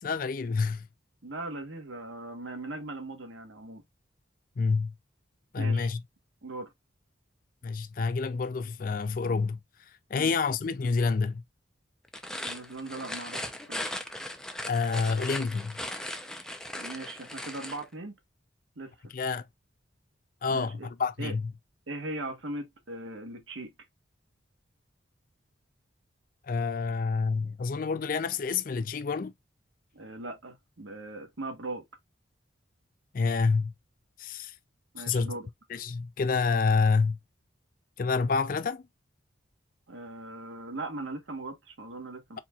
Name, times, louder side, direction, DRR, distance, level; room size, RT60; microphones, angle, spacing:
voice 1, 0.0-0.9 4.6-4.9 5.5-6.0 7.6-9.6 10.1-11.4 14.6-15.8 19.1-19.5 20.4-21.5 26.5-29.3 33.1-33.7 34.2-34.5 35.0-35.3 35.7-37.2 38.0-38.9, left 4 dB, 45° left, 0.4 m, -28 dB
voice 2, 1.2-3.8 5.6-5.9 6.4-6.7 10.1-10.3 12.3-13.9 16.7-18.1 18.7-19.1 20.5-20.9 21.2-21.3 21.9-23.7 29.9-31.8 34.9-35.5 39.9-42.4, right 2 dB, 80° right, 1.3 m, -39 dB
sound 1, 12.0-17.8, left 1 dB, 5° left, 0.6 m, -38 dB
4.4 x 4.2 x 2.4 m
head